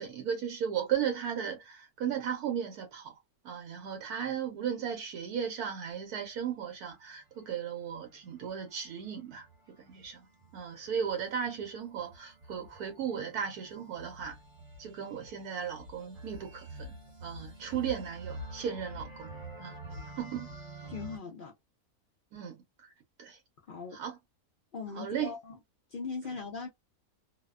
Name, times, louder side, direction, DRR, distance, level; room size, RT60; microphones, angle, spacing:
voice 1, 0.0-3.2 3.4-9.5 9.8-10.2 10.5-14.4 14.8-17.0 17.2-19.3 19.6-19.8 20.2-20.5 22.3-22.9 23.2-23.4 23.9-24.2 24.9-25.3, right 8 dB, 85° right, 1.1 m, -36 dB
sound 1, 7.5-21.2, right 1 dB, 40° right, 1.1 m, -48 dB
voice 2, 20.9-21.5 23.7-24.0 24.7-25.6 25.9-26.7, left 5 dB, 70° left, 0.4 m, -39 dB
2.7 x 2.1 x 2.3 m
omnidirectional pair, 1.6 m